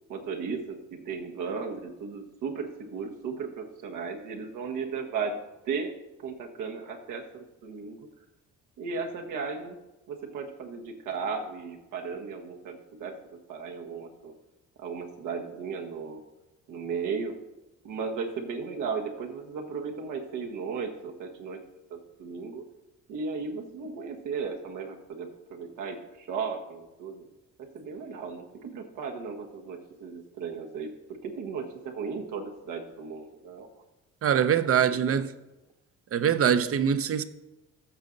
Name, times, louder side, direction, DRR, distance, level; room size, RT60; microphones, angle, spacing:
voice 1, 0.1-5.4 5.6-5.9 6.2-8.1 8.8-9.8 10.1-13.2 13.5-14.3 14.8-16.2 16.7-17.4 17.8-21.6 21.9-22.6 23.1-27.3 27.6-33.7 34.3-34.5 34.9-35.1, right 5 dB, 90° right, 1.4 m, -35 dB
voice 2, 34.2-35.3 36.1-37.2, right 8 dB, 50° right, 0.7 m, -23 dB
14.5 x 6.3 x 4.0 m
cardioid pair, 90°, 30 cm